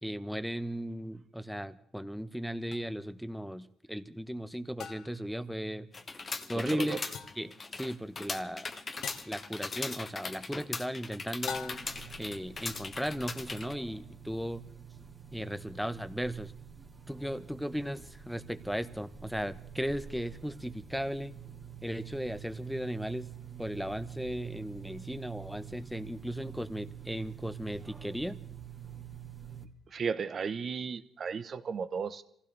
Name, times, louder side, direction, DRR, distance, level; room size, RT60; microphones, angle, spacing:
voice 1, 0.0-5.9 6.5-7.0 7.4-8.7 9.3-11.9 12.2-14.6 15.3-16.5 17.1-21.3 21.8-23.3 23.6-28.4, equal, ahead, 1.0 m, -36 dB
sound 1, 2.7-2.8 4.8-5.3 7.1-7.5 9.0-9.4 11.5-12.1, left 7 dB, 75° left, 1.2 m, -42 dB
sound 2, 5.9-13.7, left 4 dB, 35° left, 1.0 m, -39 dB
voice 2, 6.6-7.0 29.9-32.2, right 6 dB, 50° right, 1.0 m, -35 dB
sound 3, 11.4-29.6, right 8 dB, 20° right, 2.6 m, -47 dB
27.0 x 15.5 x 3.4 m
cardioid pair, 90°, 0 cm